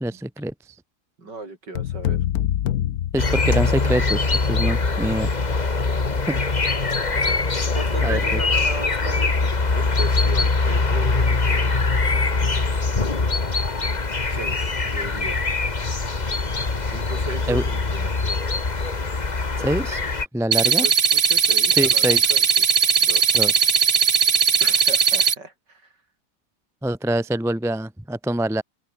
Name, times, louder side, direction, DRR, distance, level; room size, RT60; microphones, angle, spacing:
voice 1, 0.0-0.5 3.1-5.3 6.3-6.4 8.0-8.4 17.5-17.6 19.6-20.0 20.3-20.9 21.8-22.3 23.3-23.5 26.8-28.6, right 1 dB, ahead, 0.9 m, -25 dB
voice 2, 1.2-2.2 7.8-11.8 14.3-15.5 16.9-18.2 20.6-22.7 23.0-23.5 24.6-25.9, right 3 dB, 55° right, 5.5 m, -36 dB
sound 1, 1.7-4.0, left 11 dB, 60° left, 1.0 m, -25 dB
sound 2, 3.2-20.3, left 3 dB, 25° left, 1.5 m, -22 dB
sound 3, 20.5-25.3, right 6 dB, 35° right, 1.2 m, -18 dB
omnidirectional pair, 2.2 m